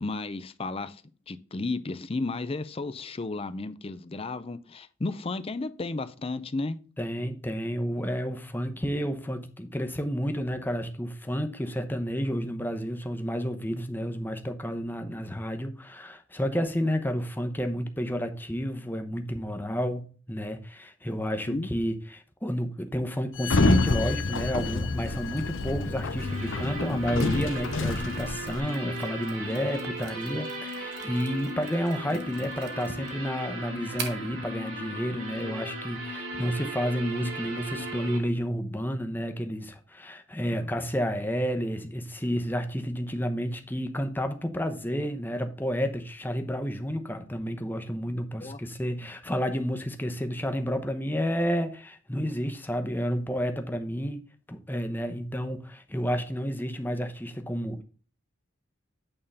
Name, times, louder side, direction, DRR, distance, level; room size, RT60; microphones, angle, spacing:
voice 1, 0.0-1.0 1.3-6.8 21.5-21.7 32.1-32.5 40.6-40.7 48.4-48.6, left 3 dB, 30° left, 0.5 m, -33 dB
voice 2, 7.0-54.2 54.5-57.8, equal, 10° left, 0.8 m, -31 dB
Sliding door, 23.4-28.6, left 2 dB, 65° left, 0.7 m, -27 dB
sound 1, 26.2-38.2, right 1 dB, 80° right, 4.8 m, -37 dB
Mechanisms, 27.2-34.4, right 6 dB, 55° right, 1.4 m, -45 dB
8.9 x 3.7 x 5.4 m
head